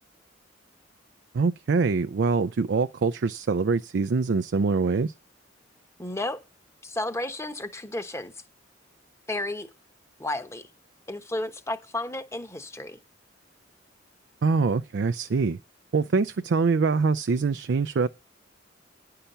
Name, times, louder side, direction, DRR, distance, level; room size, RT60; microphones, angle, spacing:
voice 1, 1.3-5.1 14.4-15.6 15.9-18.1, right 4 dB, 60° right, 0.4 m, -24 dB
voice 2, 6.0-6.4 6.8-8.3 9.3-9.7 10.2-10.7 11.1-13.0, left 2 dB, 15° left, 1.0 m, -32 dB
10.0 x 5.7 x 6.8 m
head